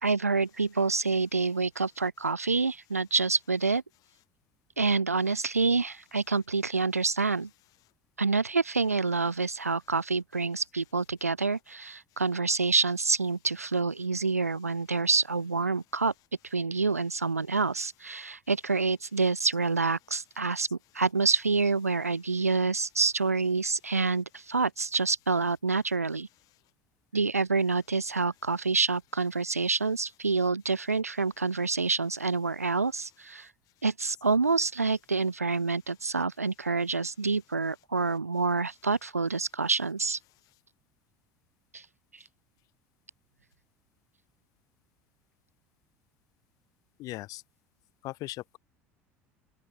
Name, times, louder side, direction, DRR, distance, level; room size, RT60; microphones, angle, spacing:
voice 1, 0.0-3.8 4.8-7.5 8.2-16.1 16.5-26.3 27.1-33.5 33.8-40.2 41.7-41.8, right 4 dB, 90° right, 0.6 m, -27 dB
voice 2, 47.0-47.4 48.0-48.6, left 18 dB, 50° left, 0.7 m, -38 dB
open air
figure-of-eight pair, 70°, 8 cm